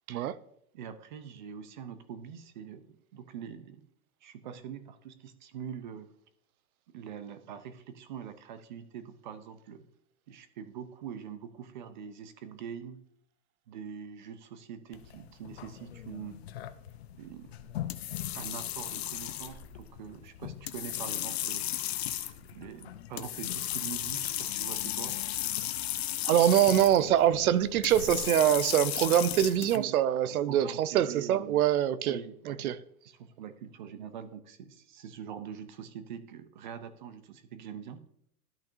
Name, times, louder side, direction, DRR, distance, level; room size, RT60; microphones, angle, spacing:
voice 1, 0.7-3.9 4.2-6.1 6.9-9.8 10.3-13.0 13.7-16.4 17.2-17.5 18.3-21.7 22.4-25.2 29.7-29.9 30.3-31.6 32.0-32.7 33.1-38.0, right 8 dB, 30° right, 0.5 m, -44 dB
sound 1, 14.9-29.8, left 12 dB, 45° left, 0.6 m, -36 dB
voice 2, 26.2-32.2 32.5-32.8, right 11 dB, 70° right, 0.6 m, -24 dB
13.0 x 5.8 x 2.6 m
hypercardioid pair, 160°, 46 cm